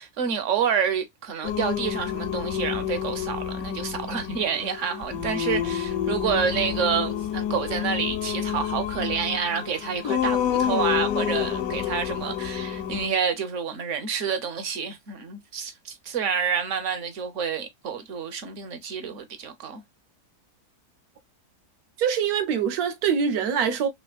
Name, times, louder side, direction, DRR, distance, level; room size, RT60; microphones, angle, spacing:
voice 1, 0.0-19.8, right 7 dB, 60° right, 1.1 m, -28 dB
Singing, 1.4-13.1, left 10 dB, 75° left, 1.0 m, -29 dB
voice 2, 22.0-23.9, right 7 dB, 80° right, 1.2 m, -24 dB
3.4 x 3.2 x 2.3 m
omnidirectional pair, 1.6 m